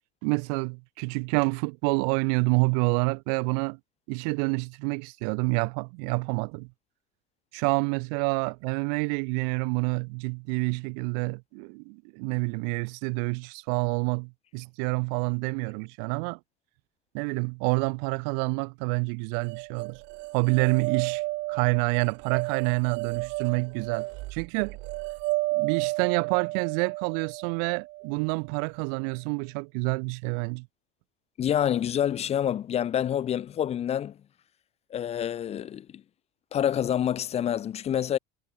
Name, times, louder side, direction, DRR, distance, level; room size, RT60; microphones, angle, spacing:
voice 1, 0.2-3.8 4.1-6.7 7.5-16.4 17.1-20.0 20.3-21.2 21.5-24.8 25.5-30.7, right 40 dB or more, 80° right, 1.0 m, -28 dB
sound 1, 19.4-28.6, right 23 dB, 60° right, 0.6 m, -32 dB
voice 2, 31.4-34.2 34.9-36.0 36.5-38.2, left 10 dB, 30° left, 0.8 m, -27 dB
cardioid pair, 145°, 21 cm